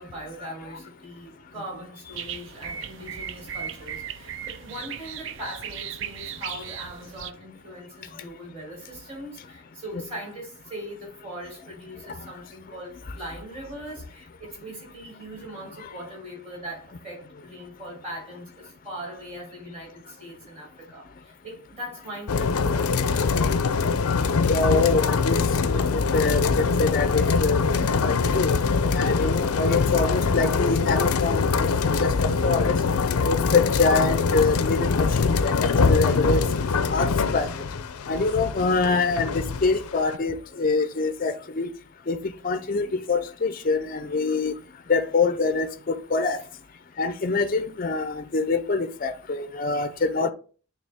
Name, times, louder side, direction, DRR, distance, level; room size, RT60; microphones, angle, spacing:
voice 1, 0.0-23.0 50.2-50.3, right 1 dB, 30° right, 3.5 m, -40 dB
sound 1, 2.1-7.3, right 8 dB, 55° right, 0.4 m, -37 dB
sound 2, 22.3-40.2, left 4 dB, 90° left, 0.5 m, -23 dB
voice 2, 24.5-25.4 25.6-27.6 28.0-28.5 28.9-31.7 32.0-32.1 32.4-32.7 33.2-36.4 36.9-37.5 38.1-41.7 42.1-44.5 44.9-46.4 47.0-50.3, left 4 dB, 40° left, 0.4 m, -25 dB
8.9 x 3.4 x 3.5 m
head